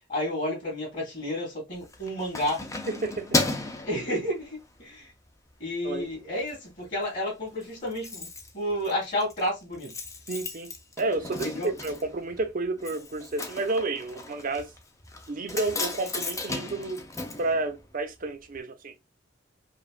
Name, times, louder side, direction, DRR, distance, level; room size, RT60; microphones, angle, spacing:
voice 1, 0.1-2.6 3.8-5.1 5.6-8.3 8.5-10.0 11.4-11.7, left 1 dB, 45° left, 2.6 m, -31 dB
Keys jangling, 1.7-4.8 5.3-5.5 5.9-6.6 6.8-6.9 7.2-7.3 7.5-18.3 18.5-18.6, left 2 dB, 15° left, 0.6 m, -35 dB
voice 2, 2.9-3.4 5.8-6.1 10.3-14.7 15.3-17.1 17.4-18.9, right 2 dB, 45° right, 0.7 m, -31 dB
5.1 x 2.4 x 2.4 m
head